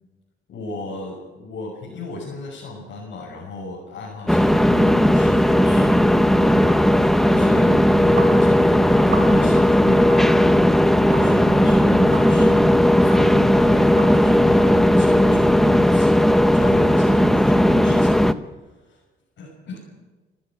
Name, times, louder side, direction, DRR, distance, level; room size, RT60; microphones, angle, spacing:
voice 1, 0.5-12.7 13.0-19.0 19.4-19.8, left 3 dB, 65° left, -4 dB, 6.5 m, -35 dB
sound 1, 4.3-18.3, equal, ahead, 0.8 m, -16 dB
sound 2, 8.2-8.3 9.0-9.5 10.1-10.2 11.1-11.2 12.1-12.3 13.1-13.2 14.0-14.1, right 5 dB, 85° right, 6.4 m, -31 dB
29.5 x 14.5 x 6.2 m, 1.2 s
cardioid pair, 90°, 20 cm